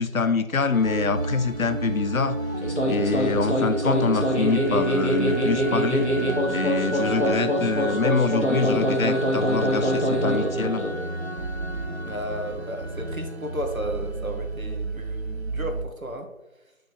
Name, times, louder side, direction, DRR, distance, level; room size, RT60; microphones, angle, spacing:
voice 1, 0.0-2.4 2.9-6.1 6.5-10.8, left 5 dB, 80° left, 11 dB, 0.8 m, -25 dB
sound 1, 0.7-15.8, right 2 dB, 50° right, 1.1 m, -31 dB
sound 2, 2.6-11.0, equal, 55° left, 2.1 m, -24 dB
voice 2, 7.1-7.7 12.0-16.3, right 1 dB, 85° right, 4 dB, 1.9 m, -33 dB
8.9 x 6.0 x 4.8 m, 0.94 s
figure-of-eight pair, 175°, 41 cm